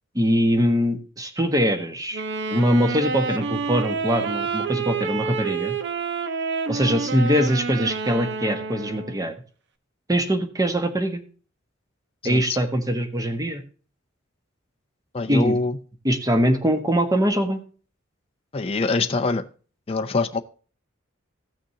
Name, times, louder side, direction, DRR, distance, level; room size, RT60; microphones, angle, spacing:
voice 1, 0.1-2.2 2.5-5.7 6.7-9.4 10.1-11.2 12.2-13.6 15.3-15.6 16.0-17.6, equal, 20° right, 1.3 m, -22 dB
Wind instrument woodwind instrument, 2.1-9.3, right 4 dB, 60° right, 0.9 m, -28 dB
voice 2, 15.1-15.8 18.5-19.5 19.9-20.4, left 3 dB, 30° left, 0.5 m, -24 dB
15.5 x 6.4 x 2.8 m
head